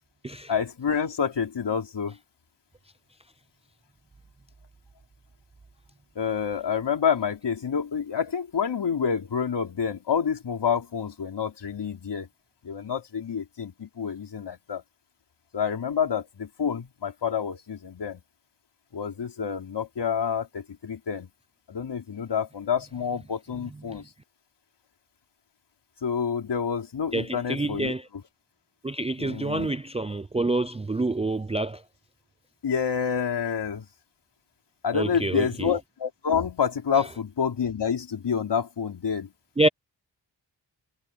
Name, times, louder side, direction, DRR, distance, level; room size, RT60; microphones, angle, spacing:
voice 1, 0.5-2.2 6.2-12.3 12.6-14.8 15.5-18.2 18.9-21.3 21.7-24.0 26.0-27.9 29.2-29.7 32.6-33.9 34.8-39.3, left 7 dB, 65° left, 3.8 m, -28 dB
voice 2, 27.1-28.1 28.8-31.8 34.9-35.7 39.6-39.7, right 2 dB, 15° right, 0.4 m, -27 dB
wide cardioid pair, 130°, 44 cm